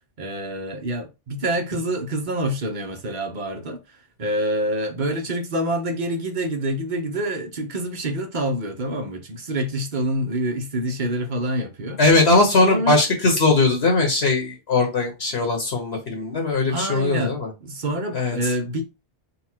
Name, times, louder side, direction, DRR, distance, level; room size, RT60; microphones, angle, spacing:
voice 1, 0.2-3.8 4.2-12.0 12.6-13.0 16.7-18.8, right 1 dB, 45° right, 0.9 m, -26 dB
voice 2, 12.0-17.5 18.1-18.6, left 3 dB, 65° left, 1.3 m, -20 dB
4.1 x 2.4 x 4.4 m
omnidirectional pair, 1.2 m